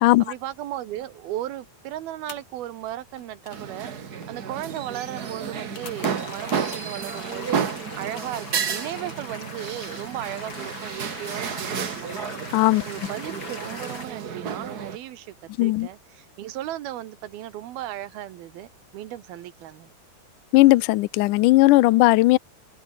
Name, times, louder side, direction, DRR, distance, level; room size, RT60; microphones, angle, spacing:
voice 1, 0.2-12.6 12.9-19.9, right 13 dB, 75° right, 3.1 m, -36 dB
sound 1, 2.2-7.1 7.5-8.7 10.0-11.8 12.9-13.1 13.9-15.1, left 7 dB, 50° left, 3.7 m, -50 dB
sound 2, 3.5-15.0, right 6 dB, 60° right, 1.0 m, -32 dB
sound 3, 5.8-14.0, left 3 dB, 30° left, 6.1 m, -40 dB
voice 2, 12.5-12.8 15.6-15.9 20.5-22.4, left 19 dB, 80° left, 1.8 m, -17 dB
omnidirectional pair, 4.5 m